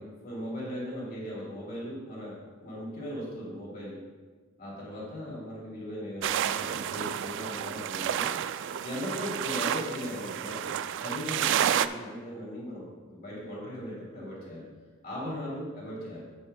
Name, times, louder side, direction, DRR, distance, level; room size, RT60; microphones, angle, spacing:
voice 1, 0.0-4.0 4.6-8.3 8.7-10.7 11.0-14.6 15.0-16.2, equal, 45° left, -6 dB, 2.8 m, -38 dB
sound 1, 6.2-11.9, right 10 dB, 60° right, 0.3 m, -30 dB
12.5 x 8.4 x 2.2 m, 1.4 s
head